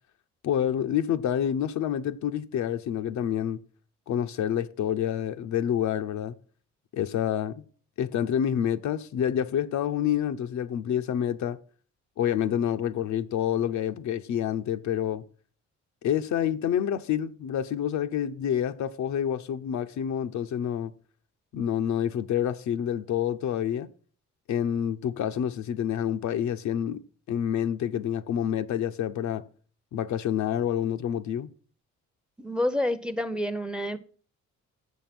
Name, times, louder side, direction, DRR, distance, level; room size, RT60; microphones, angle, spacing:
voice 1, 0.4-3.6 4.1-6.3 6.9-7.6 8.0-11.6 12.2-15.2 16.0-20.9 21.5-23.9 24.5-27.0 27.3-29.4 29.9-31.5, left 9 dB, 70° left, 0.7 m, -28 dB
voice 2, 32.4-34.0, left 1 dB, 5° right, 0.7 m, -28 dB
7.2 x 6.9 x 6.0 m
cardioid pair, 90°, 30 cm